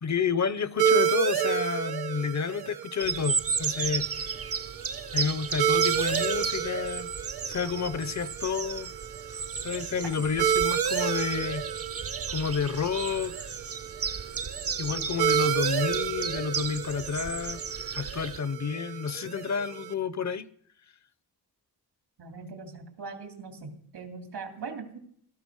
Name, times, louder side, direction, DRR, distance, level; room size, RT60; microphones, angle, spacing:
voice 1, 0.0-4.4 5.1-7.1 7.4-8.9 9.6-11.7 12.3-13.3 14.8-17.6 17.9-20.5, left 6 dB, 45° left, 0.7 m, -30 dB
sound 1, 0.8-19.9, right 9 dB, 70° right, 1.3 m, -31 dB
sound 2, 3.0-18.4, right 6 dB, 35° right, 0.6 m, -34 dB
voice 2, 22.2-25.0, right 4 dB, 85° right, 3.0 m, -41 dB
17.0 x 13.5 x 6.3 m
wide cardioid pair, 140°, 39 cm